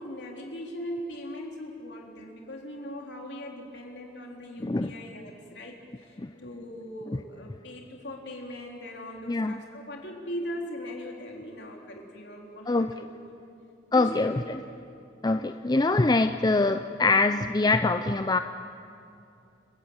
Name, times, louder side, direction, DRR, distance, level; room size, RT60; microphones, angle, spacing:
voice 1, 0.0-6.1 6.4-13.1 13.9-14.5, equal, 65° left, 1 dB, 3.6 m, -40 dB
voice 2, 4.6-4.9 6.2-6.3 7.1-7.2 9.3-9.6 12.7-12.9 13.9-14.4 15.2-18.4, left 3 dB, 20° left, 9 dB, 0.5 m, -24 dB
30.0 x 15.0 x 8.8 m, 2.6 s
head